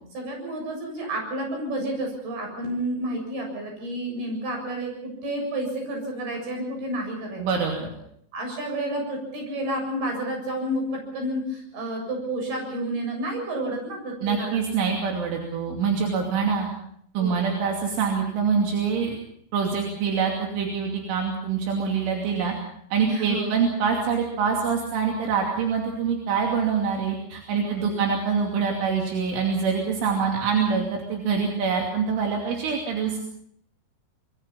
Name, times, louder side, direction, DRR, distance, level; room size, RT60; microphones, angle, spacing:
voice 1, 0.1-7.4 8.3-14.6 17.2-17.5 23.0-23.6 27.5-28.0, right 1 dB, 50° right, 2 dB, 9.2 m, -30 dB
voice 2, 7.4-7.9 14.2-16.7 17.2-19.2 19.5-22.5 22.9-33.2, right 6 dB, 80° right, 1 dB, 5.2 m, -25 dB
25.5 x 22.5 x 5.7 m, 0.68 s
omnidirectional pair, 5.6 m